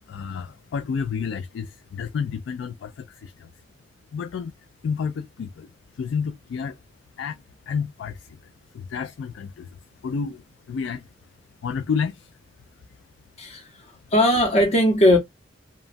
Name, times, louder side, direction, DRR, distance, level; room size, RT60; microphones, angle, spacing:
voice 1, 0.1-3.5 4.1-4.5 4.8-6.8 7.2-9.8 10.0-11.1 11.6-12.3, left 6 dB, 75° left, 0.3 m, -30 dB
voice 2, 13.4-15.2, left 1 dB, 40° left, 0.7 m, -19 dB
2.9 x 2.2 x 2.5 m
head